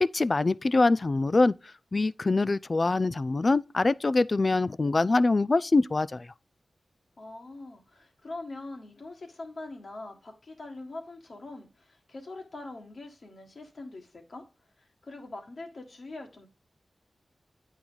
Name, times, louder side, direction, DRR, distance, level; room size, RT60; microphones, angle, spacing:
voice 1, 0.0-1.5 1.9-6.3, left 3 dB, 45° left, 0.3 m, -24 dB
voice 2, 7.2-14.4 14.8-16.5, left 2 dB, 65° left, 1.7 m, -43 dB
8.6 x 4.6 x 3.9 m
cardioid pair, 50°, 0 cm